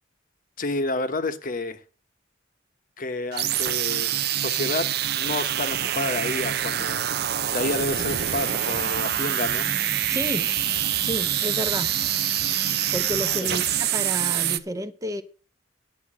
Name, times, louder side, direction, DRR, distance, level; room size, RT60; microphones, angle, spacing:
voice 1, 0.6-1.8 3.0-4.9 5.1-7.0 7.5-9.7 13.5-13.6, left 2 dB, 45° left, 1.0 m, -29 dB
sound 1, 3.3-14.6, right 11 dB, 55° right, 0.6 m, -25 dB
sound 2, 8.0-13.8, left 4 dB, 75° left, 1.0 m, -40 dB
voice 2, 10.1-10.5 11.0-11.9 12.9-15.2, equal, 15° right, 0.7 m, -30 dB
10.0 x 7.2 x 7.3 m
head